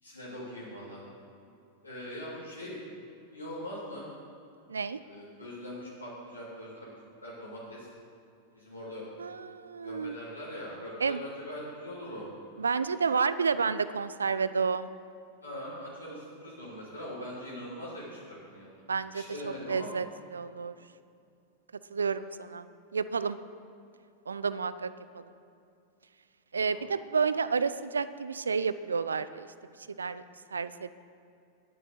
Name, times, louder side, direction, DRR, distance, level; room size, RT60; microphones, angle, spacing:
voice 1, 0.0-1.0 1.8-2.8 3.3-4.1 5.0-6.9 7.2-7.9 8.5-9.1 9.8-12.3 15.4-18.8 19.1-19.9 26.7-26.9, equal, 80° left, -8 dB, 3.0 m, -42 dB
voice 2, 4.7-5.0 9.2-10.2 11.0-11.2 12.6-14.9 18.9-20.1 20.3-20.8 21.9-22.7 22.9-23.4 24.3-25.2 26.5-29.5 30.0-30.2 30.5-30.9, right 5 dB, 75° right, 14 dB, 0.4 m, -30 dB
10.0 x 9.5 x 6.7 m, 2.5 s
figure-of-eight pair, 90°, 0 cm